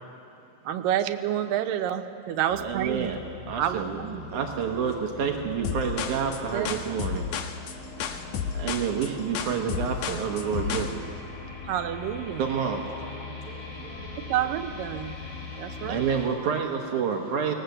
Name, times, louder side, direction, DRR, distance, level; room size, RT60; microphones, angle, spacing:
voice 1, 0.6-3.1 3.6-4.3 6.5-6.9 11.7-12.4 14.3-15.2 15.6-16.1, right 11 dB, 90° right, 8 dB, 2.5 m, -29 dB
sound 1, 2.5-16.3, left 4 dB, 85° left, 5.1 m, -41 dB
voice 2, 2.6-3.2 3.5-4.0 4.3-7.3 8.5-11.0 12.4-12.8 15.9-17.5, right 7 dB, 70° right, 2 dB, 2.4 m, -28 dB
voice 3, 3.7-6.2 8.0-8.4 12.6-14.6 15.8-17.6, right 2 dB, 40° right, -7 dB, 5.5 m, -49 dB
sound 2, 5.6-10.9, left 7 dB, 70° left, 2.2 m, -31 dB
18.5 x 18.0 x 8.0 m, 2.6 s
omnidirectional pair, 3.8 m